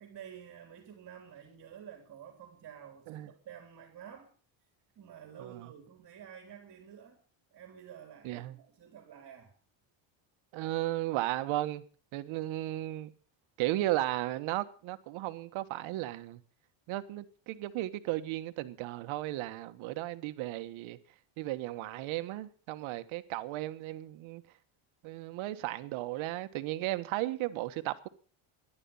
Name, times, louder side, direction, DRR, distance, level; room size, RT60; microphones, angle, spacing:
voice 1, 0.0-4.3 5.0-7.2 7.5-9.5, right 9 dB, 40° right, 3.7 m, -50 dB
voice 2, 8.2-8.6 10.5-11.8 12.1-13.1 13.6-16.4 16.9-21.0 21.4-24.4 25.0-28.1, right 16 dB, 75° right, 1.5 m, -35 dB
14.5 x 11.5 x 7.2 m
cardioid pair, 135°, 48 cm